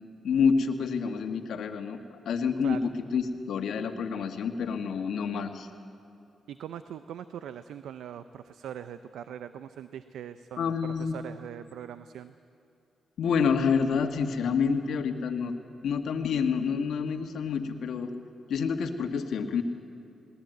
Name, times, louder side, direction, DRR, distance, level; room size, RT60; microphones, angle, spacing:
voice 1, 0.2-2.0 2.3-5.7 10.6-11.3 13.2-15.5 15.8-18.1 18.5-19.6, left 6 dB, 80° left, 6 dB, 1.7 m, -28 dB
voice 2, 6.5-12.3, right 9 dB, 85° right, 12 dB, 0.6 m, -41 dB
20.0 x 19.0 x 9.3 m, 2.8 s
cardioid pair, 75°, 0 cm